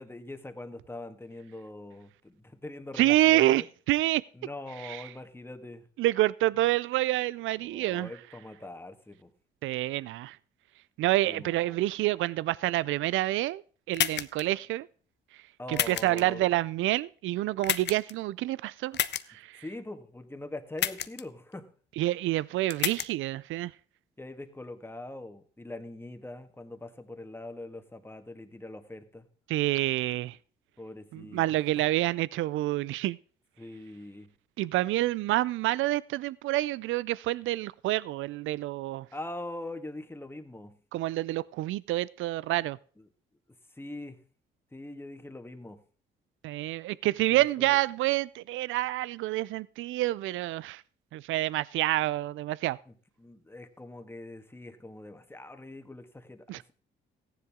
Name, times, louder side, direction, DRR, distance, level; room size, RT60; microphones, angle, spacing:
voice 1, 0.0-3.7 4.3-5.9 7.6-9.3 11.3-11.8 15.6-16.5 19.5-21.7 24.2-29.3 30.8-31.4 33.6-34.3 39.1-40.8 43.7-44.2 44.7-45.8 47.3-47.8 52.9-56.7, left 2 dB, 10° left, 7 dB, 1.7 m, -43 dB
voice 2, 3.0-4.2 4.8-5.0 6.0-8.1 9.6-10.4 11.0-13.6 13.9-14.9 15.7-19.0 19.3-19.6 22.0-23.7 29.5-30.4 31.1-33.2 34.6-39.1 40.9-42.8 46.4-50.8 51.1-52.8 56.5-56.6, right 16 dB, 80° right, 21 dB, 0.4 m, -28 dB
sound 1, 13.9-14.4 15.7-16.2 17.6-18.1 18.9-19.2 20.8-21.2 22.7-23.1, left 10 dB, 60° left, 0.8 m, -29 dB
15.0 x 10.5 x 3.6 m, 0.42 s
cardioid pair, 90°, 20 cm